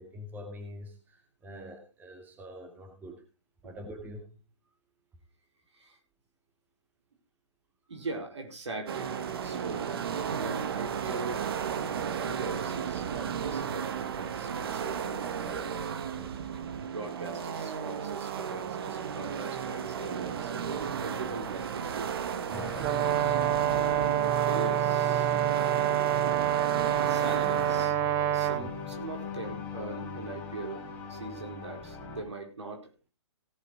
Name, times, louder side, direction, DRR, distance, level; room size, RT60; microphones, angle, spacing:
voice 1, 0.0-3.2 3.6-4.3 16.2-16.3 22.5-22.8 28.6-28.7, left 1 dB, 10° right, 4 dB, 2.3 m, -45 dB
voice 2, 7.9-10.1 10.3-11.4 12.1-15.7 16.8-22.2 23.2-25.4 27.0-27.9 28.3-32.9, right 3 dB, 70° right, 3 dB, 4.8 m, -41 dB
sound 1, 8.9-27.9, right 7 dB, 55° right, 1.5 m, -34 dB
sound 2, 22.5-32.2, left 1 dB, 15° left, 5.6 m, -40 dB
Brass instrument, 22.8-28.6, right 12 dB, 30° right, 0.8 m, -27 dB
17.5 x 8.3 x 4.2 m, 0.32 s
figure-of-eight pair, 135°, 15 cm